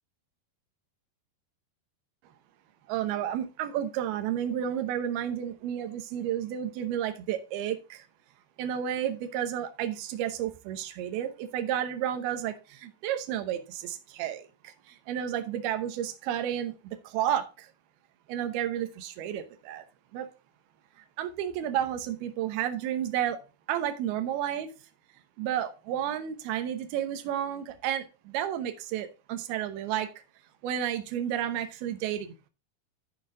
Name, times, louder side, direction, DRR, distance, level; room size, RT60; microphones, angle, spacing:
voice 1, 2.9-8.0 8.6-17.7 18.3-19.8 20.1-20.3 21.2-23.4 23.7-24.7 25.4-30.1 30.6-32.5, right 10 dB, 80° right, 2.8 m, -31 dB
13.5 x 4.6 x 3.7 m
omnidirectional pair, 4.6 m